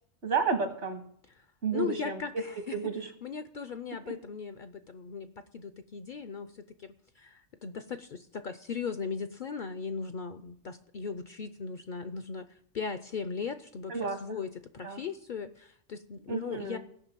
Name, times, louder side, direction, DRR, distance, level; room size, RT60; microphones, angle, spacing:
voice 1, 0.2-1.0 1.6-2.2 2.7-3.1 4.1-4.2 13.9-14.2 14.8-15.0 16.3-16.8, right 5 dB, 70° right, 5 dB, 2.1 m, -31 dB
voice 2, 1.7-2.8 3.2-16.8, left 5 dB, 55° left, 10 dB, 0.6 m, -38 dB
16.5 x 5.8 x 7.4 m, 0.69 s
omnidirectional pair, 1.3 m